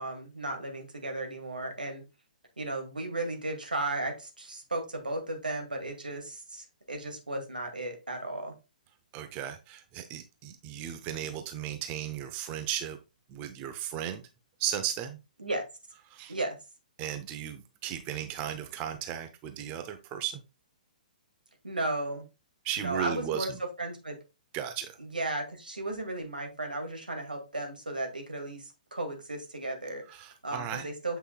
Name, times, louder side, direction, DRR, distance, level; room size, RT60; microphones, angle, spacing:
voice 1, 0.0-2.0 2.6-8.5 15.4-15.7 16.3-16.6 21.6-22.3 22.8-23.5 23.8-24.2 25.0-30.0 30.4-31.2, right 2 dB, 85° right, 3 dB, 2.1 m, -35 dB
voice 2, 9.1-13.0 13.3-14.2 14.6-15.2 16.1-16.3 17.0-20.4 22.6-23.6 24.5-25.0 30.1-30.9, right 10 dB, 30° right, 8 dB, 0.7 m, -35 dB
8.0 x 5.6 x 2.3 m, 0.27 s
figure-of-eight pair, 125°, 5 cm